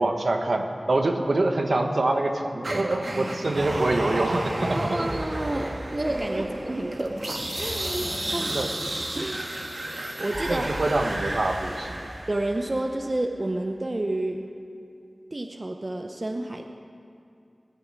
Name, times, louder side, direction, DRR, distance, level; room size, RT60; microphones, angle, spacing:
voice 1, 0.0-5.0 6.4-6.5 8.5-8.7 10.5-12.0, right 2 dB, 80° right, 4 dB, 1.2 m, -25 dB
sound 1, 2.6-12.8, right 1 dB, 60° right, 1.7 m, -32 dB
voice 2, 4.7-8.6 9.1-9.5 9.9-10.7 12.3-14.4 15.3-16.7, right 1 dB, 40° right, 4 dB, 0.7 m, -30 dB
sound 2, 6.9-10.9, left 2 dB, 60° left, 1.6 m, -42 dB
18.0 x 6.7 x 8.8 m, 2.5 s
wide cardioid pair, 70°, 0 cm